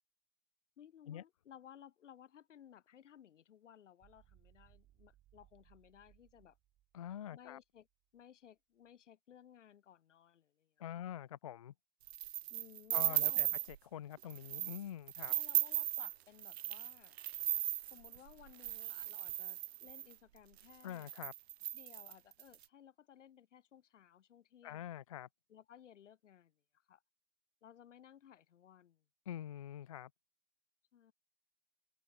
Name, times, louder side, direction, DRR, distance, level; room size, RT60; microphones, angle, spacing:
voice 1, 0.8-6.6 7.3-7.9 8.1-11.1 12.5-13.5 15.3-17.2 17.9-21.1 21.7-24.9 25.5-26.6 26.9-27.0 27.6-29.0 30.9-31.1, left 9 dB, 85° left, 3.0 m, -59 dB
sound 1, 4.0-8.2, right 13 dB, 15° right, 1.9 m, -68 dB
voice 2, 6.9-7.6 10.8-11.7 12.9-15.3 20.8-21.3 24.6-25.3 29.3-30.1, left 11 dB, 30° left, 0.4 m, -45 dB
sound 2, 12.1-13.8 14.2-14.8 15.1-20.1 20.7-20.8 21.0-22.5, right 13 dB, 60° right, 0.6 m, -37 dB
hypercardioid pair, 170°, 36 cm